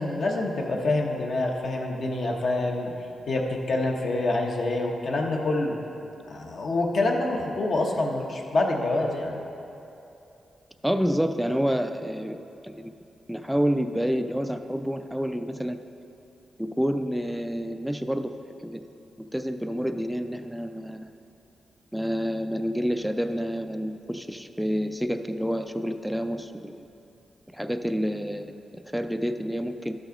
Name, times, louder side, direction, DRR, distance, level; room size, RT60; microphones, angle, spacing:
voice 1, 0.0-2.9 3.3-5.8 6.3-9.4, left 2 dB, 50° left, 0 dB, 0.8 m, -26 dB
voice 2, 10.8-12.9 13.3-15.8 16.6-18.3 18.6-18.8 19.3-21.1 21.9-26.9 27.5-30.0, equal, ahead, 7 dB, 0.3 m, -28 dB
12.5 x 6.1 x 3.8 m, 2.8 s
wide cardioid pair, 160°, 0 cm